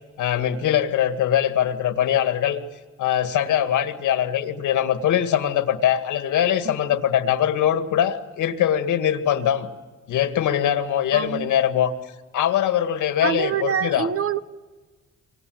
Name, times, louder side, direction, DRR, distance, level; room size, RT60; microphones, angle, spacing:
voice 1, 0.2-2.6 3.0-9.7 10.1-11.9 12.3-14.1, left 10 dB, 80° left, 2.1 m, -22 dB
voice 2, 11.1-11.5 13.2-14.4, right 8 dB, 50° right, 1.0 m, -25 dB
27.5 x 24.0 x 8.0 m
cardioid pair, 90°, 30 cm